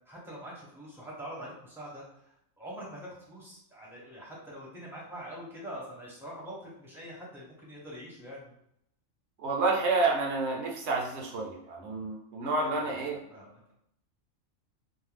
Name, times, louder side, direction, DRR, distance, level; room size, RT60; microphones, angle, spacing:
voice 1, 0.1-8.5 12.6-13.7, equal, ahead, -6 dB, 0.6 m, -44 dB
voice 2, 9.4-13.2, right 3 dB, 65° right, 0 dB, 0.9 m, -29 dB
2.5 x 2.2 x 3.2 m, 0.75 s
omnidirectional pair, 1.4 m